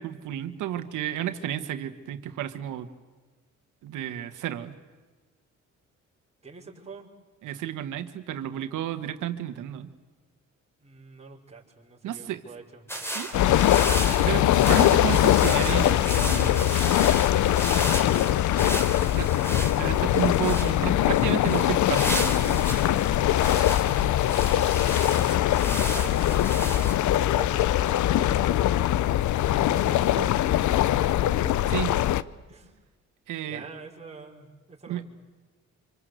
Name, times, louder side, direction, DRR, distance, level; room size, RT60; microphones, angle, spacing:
voice 1, 0.0-2.9 3.8-4.7 7.4-9.9 12.0-12.4 13.0-13.5 14.2-16.7 19.1-19.3 19.8-22.7 31.7-31.9 33.3-33.6 34.9-35.1, right 11 dB, 85° right, 9 dB, 1.8 m, -32 dB
voice 2, 6.4-7.1 10.8-12.8 18.9-19.8 25.2-27.0 27.3-28.8 29.6-31.6 32.5-32.8 33.5-35.1, right 4 dB, 20° right, -2 dB, 5.6 m, -45 dB
sound 1, 12.9-26.9, right 1 dB, 10° left, 4.0 m, -35 dB
sound 2, 13.3-32.2, left 12 dB, 75° left, 0.8 m, -22 dB
26.5 x 25.5 x 8.2 m, 1.3 s
cardioid pair, 90°, 30 cm